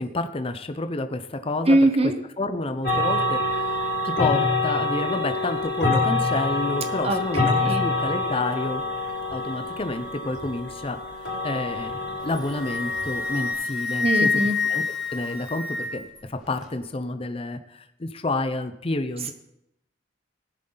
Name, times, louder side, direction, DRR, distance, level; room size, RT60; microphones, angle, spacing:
voice 1, 0.0-1.8 2.4-3.8 4.0-8.8 9.3-11.0 11.4-14.3 14.7-14.8 15.1-19.3, left 2 dB, 30° left, 9 dB, 0.7 m, -29 dB
voice 2, 1.7-2.2 7.0-7.8 14.0-14.6, right 1 dB, 35° right, 7 dB, 0.9 m, -22 dB
sound 1, 2.8-13.5, left 2 dB, 80° left, 4.5 m, -26 dB
Wind instrument woodwind instrument, 12.2-16.2, left 4 dB, ahead, 5.2 m, -27 dB
19.5 x 7.6 x 3.9 m, 0.81 s
head